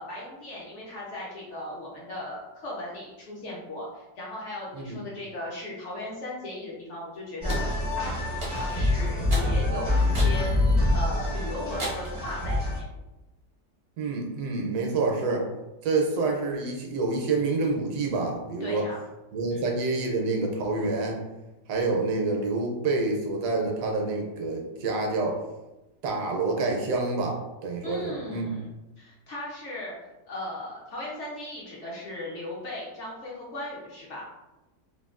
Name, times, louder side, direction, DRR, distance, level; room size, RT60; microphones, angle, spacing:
voice 1, 0.0-7.6 8.0-10.5 10.9-12.9 18.6-19.0 19.5-19.6 27.8-29.9 30.3-34.2, left 1 dB, 70° left, -5 dB, 0.6 m, -37 dB
sound 1, 7.4-12.8, left 2 dB, 35° left, 0.4 m, -25 dB
sound 2, 7.5-7.7 8.4-8.8 9.3-9.5 10.1-10.4 10.9-11.0 11.8-12.2, right 1 dB, 45° right, 0.4 m, -34 dB
voice 2, 14.0-15.5 15.8-18.9 19.3-21.2 21.7-25.4 26.0-28.6, right 3 dB, 75° right, 0 dB, 1.1 m, -27 dB
3.5 x 2.2 x 2.4 m, 1.0 s
omnidirectional pair, 1.9 m